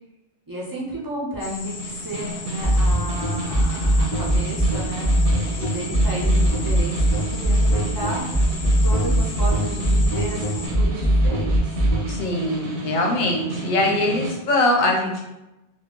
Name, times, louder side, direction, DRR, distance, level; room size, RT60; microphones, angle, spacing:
voice 1, 0.5-5.1 5.4-8.6 8.8-11.8, right 1 dB, 35° right, -6 dB, 0.3 m, -33 dB
sound 1, 1.4-10.7, left 4 dB, 90° left, 0.9 m, -37 dB
Snare drum, 1.6-14.4, right 1 dB, 90° right, 0.9 m, -32 dB
sound 2, 2.6-12.0, right 1 dB, 15° left, 0.6 m, -19 dB
voice 2, 12.1-15.2, left 2 dB, 50° left, 0 dB, 0.7 m, -22 dB
2.2 x 2.0 x 3.6 m, 0.94 s
omnidirectional pair, 1.1 m